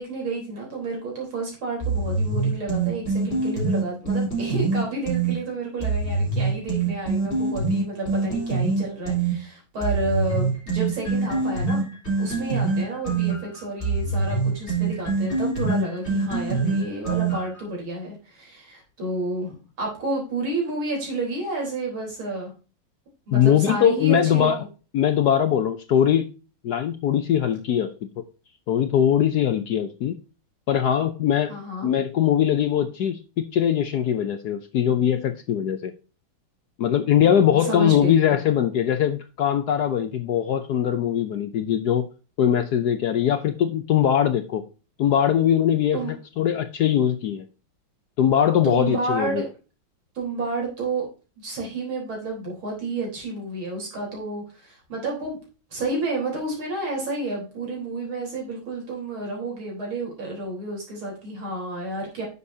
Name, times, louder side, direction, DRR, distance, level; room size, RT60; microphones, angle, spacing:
voice 1, 0.0-11.8 12.2-22.5 23.3-24.5 31.5-31.9 37.2-38.2 45.9-46.1 48.6-49.5 50.1-51.1 51.4-55.4 55.7-62.2, right 2 dB, 75° right, -1 dB, 4.7 m, -30 dB
sound 1, 1.8-5.3 5.8-9.3 9.8-17.6, right 3 dB, 30° left, 4.3 m, -24 dB
voice 2, 23.3-24.6 24.9-26.3 26.6-27.9 28.7-30.2 30.7-31.5 31.8-35.9 36.8-42.1 42.4-44.6 45.0-47.4 48.2-49.4, left 9 dB, 65° left, 9 dB, 1.0 m, -21 dB
9.7 x 6.9 x 2.7 m, 0.32 s
omnidirectional pair, 2.3 m